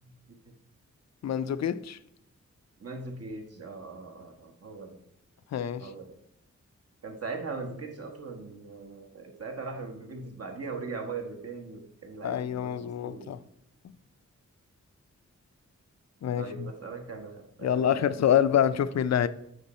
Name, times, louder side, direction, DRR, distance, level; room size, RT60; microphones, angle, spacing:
voice 1, 0.0-0.4 2.8-5.0 5.8-6.1 7.0-13.4 16.4-18.3, right 4 dB, 55° right, 1.2 m, -40 dB
voice 2, 1.2-2.0 5.5-5.9 12.2-13.4 16.2-16.7 17.6-19.3, left 9 dB, 60° left, 0.4 m, -26 dB
8.2 x 5.1 x 4.2 m
wide cardioid pair, 125°, 30 cm